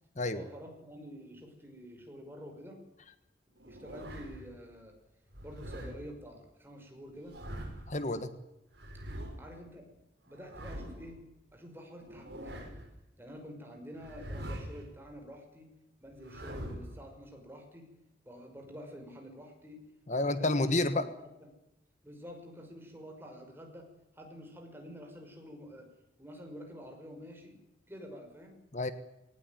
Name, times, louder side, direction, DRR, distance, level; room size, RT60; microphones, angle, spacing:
voice 1, 0.3-2.8 3.7-5.0 5.4-7.4 9.4-10.0 10.3-11.2 11.5-12.7 13.2-15.7 16.0-17.9 18.3-19.8 20.1-21.1 21.4-21.5 22.0-23.9 24.1-25.9 26.2-27.6 27.9-28.6, equal, 10° right, 3 dB, 5.7 m, -48 dB
sound 1, 3.6-4.5 5.3-5.9 7.1-7.9 8.7-9.3 10.3-11.1 12.0-12.9 14.0-14.9 16.1-17.0, equal, 60° right, 5.8 m, -43 dB
voice 2, 7.9-8.4 20.1-21.1 28.7-28.9, left 2 dB, 40° left, 11 dB, 1.3 m, -29 dB
20.0 x 18.5 x 9.3 m, 0.91 s
head